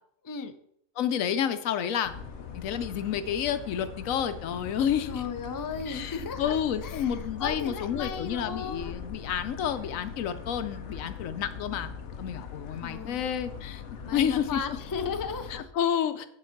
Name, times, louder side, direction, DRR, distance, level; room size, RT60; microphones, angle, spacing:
voice 1, 0.2-0.6 5.1-9.0 12.8-13.2 14.0-15.7, left 5 dB, 30° left, 8 dB, 0.4 m, -36 dB
voice 2, 1.0-2.1 2.5-5.2 5.9-11.9 12.2-13.8 14.1-14.6 15.5-16.3, left 9 dB, 90° left, 12 dB, 1.1 m, -30 dB
sound 1, 2.0-15.6, left 6 dB, 65° left, 1.1 m, -41 dB
9.9 x 4.0 x 5.8 m, 0.71 s
omnidirectional pair, 1.4 m